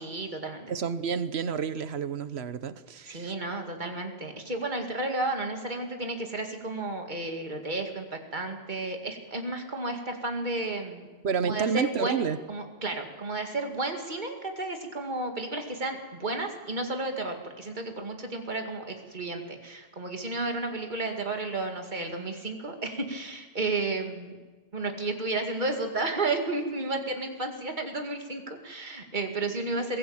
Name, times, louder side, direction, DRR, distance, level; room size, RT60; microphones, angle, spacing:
voice 1, 0.0-0.7 3.1-11.1 11.4-12.2 12.5-24.3 24.7-30.0, right 2 dB, 50° right, 4 dB, 2.4 m, -32 dB
voice 2, 0.7-3.3 11.2-12.4, right 6 dB, 85° right, 13 dB, 1.2 m, -29 dB
21.5 x 16.0 x 8.8 m, 1.3 s
omnidirectional pair, 1.0 m